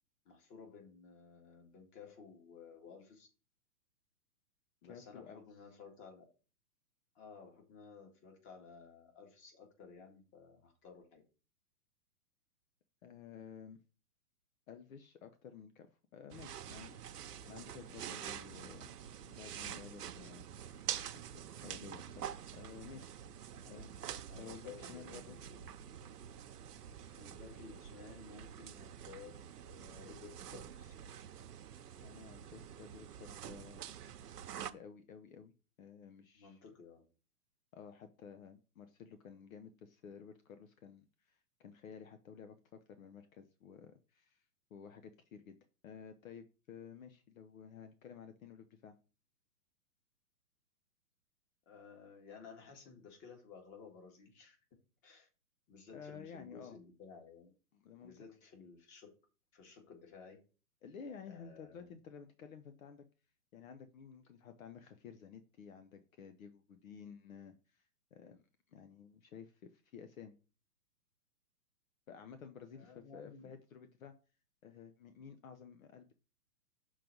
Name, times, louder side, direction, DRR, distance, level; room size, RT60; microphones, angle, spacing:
voice 1, 0.3-3.3 4.8-6.3 7.2-11.2 23.5-25.7 27.1-30.9 36.3-37.0 51.7-54.6 55.0-55.3 55.7-57.5 58.0-59.1 59.5-60.4 61.3-61.9 72.7-73.5, left 5 dB, 25° left, 3 dB, 1.9 m, -55 dB
voice 2, 4.9-5.4 13.0-13.8 14.7-18.9 19.2-20.5 21.1-23.1 23.7-23.9 24.3-25.4 32.0-33.8 34.5-36.6 37.7-44.4 44.7-45.6 45.8-49.0 55.9-56.8 57.7-58.1 60.8-63.1 63.5-70.3 72.1-74.1 74.6-76.1, left 7 dB, 60° left, 9 dB, 0.9 m, -53 dB
sound 1, 16.3-34.7, right 9 dB, 80° right, 0.9 m, -47 dB
6.5 x 4.0 x 5.9 m, 0.34 s
hypercardioid pair, 145°, 46 cm